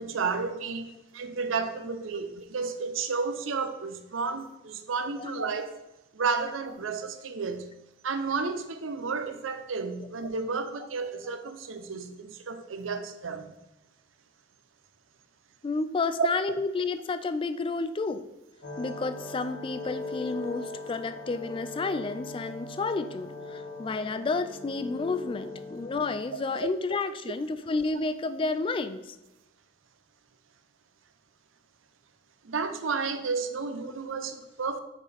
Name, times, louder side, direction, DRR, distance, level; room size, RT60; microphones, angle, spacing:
voice 1, 0.0-5.8 6.1-7.7 8.0-13.6 16.2-16.3 32.4-34.8, right 4 dB, 90° right, 9 dB, 0.6 m, -32 dB
voice 2, 15.6-18.3 18.8-29.2, left 3 dB, 25° left, 12 dB, 0.3 m, -31 dB
sound 1, 18.6-26.2, left 2 dB, 90° left, 1.7 m, -40 dB
6.0 x 5.0 x 4.2 m, 0.96 s
head